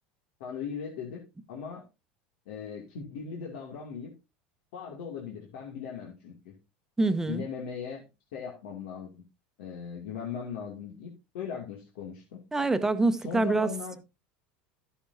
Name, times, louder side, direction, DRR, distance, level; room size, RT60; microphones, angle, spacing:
voice 1, 0.4-1.9 2.5-4.1 4.7-6.5 7.3-8.0 8.3-9.2 9.6-12.4 13.2-14.0, left 7 dB, 80° left, 2.5 m, -39 dB
voice 2, 7.0-7.4 12.5-13.7, right 2 dB, 10° right, 1.0 m, -25 dB
12.5 x 8.6 x 2.7 m
supercardioid pair, 115°, 5 cm